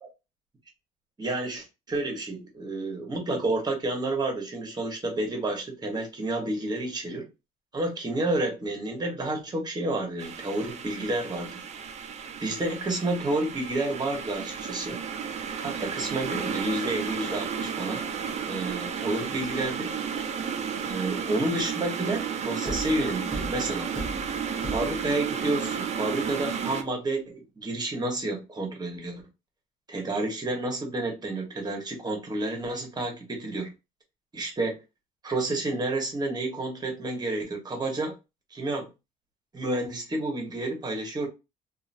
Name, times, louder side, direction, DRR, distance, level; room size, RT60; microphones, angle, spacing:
voice 1, 1.2-7.3 7.7-11.5 12.4-15.0 15.6-18.0 18.5-19.9 20.8-23.9 24.7-29.2 29.9-33.7 34.3-34.8 35.2-38.1 38.5-38.9 39.5-41.3, right 2 dB, 25° right, 1.3 m, -30 dB
sound 1, 10.2-26.8, right 7 dB, 40° right, 0.5 m, -33 dB
Thump thud, 22.6-25.3, right 1 dB, 5° left, 1.0 m, -37 dB
2.9 x 2.5 x 2.6 m
cardioid pair, 110°, 17 cm